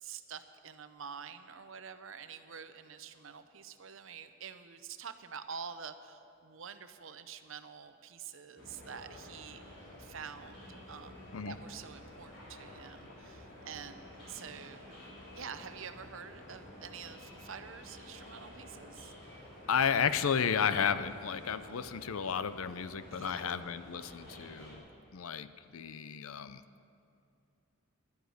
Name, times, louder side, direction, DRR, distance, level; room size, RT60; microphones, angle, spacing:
voice 1, 0.0-9.6 10.0-15.0 15.3-19.1 23.1-23.7, right 6 dB, 65° right, 10 dB, 0.7 m, -47 dB
sound 1, 8.6-24.8, left 1 dB, 55° left, 4.3 m, -51 dB
voice 2, 19.7-24.8 25.1-26.6, left 7 dB, 75° left, 13 dB, 0.5 m, -32 dB
12.0 x 10.0 x 8.0 m, 2.6 s
head